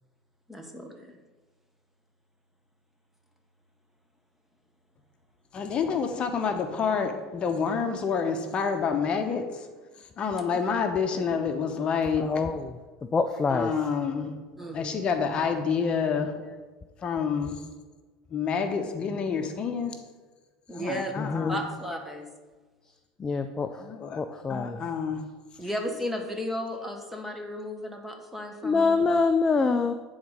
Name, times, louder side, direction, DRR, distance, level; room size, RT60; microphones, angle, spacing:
voice 1, 0.5-1.2 14.6-15.0 20.7-21.1 21.5-22.3 25.6-29.0, equal, 5° right, 3 dB, 1.3 m, -34 dB
voice 2, 5.5-9.7 10.2-12.5 13.5-14.3 14.7-16.3 17.0-17.6 18.3-19.9 20.7-21.6 23.8-24.2 24.5-25.2, left 6 dB, 40° left, 6 dB, 0.9 m, -28 dB
voice 3, 12.2-12.7 13.1-13.7 21.3-21.5 23.2-23.7 24.2-24.8 28.6-29.9, left 4 dB, 25° left, 7 dB, 0.4 m, -25 dB
9.3 x 4.0 x 4.9 m, 1.3 s
supercardioid pair, 105°, 3 cm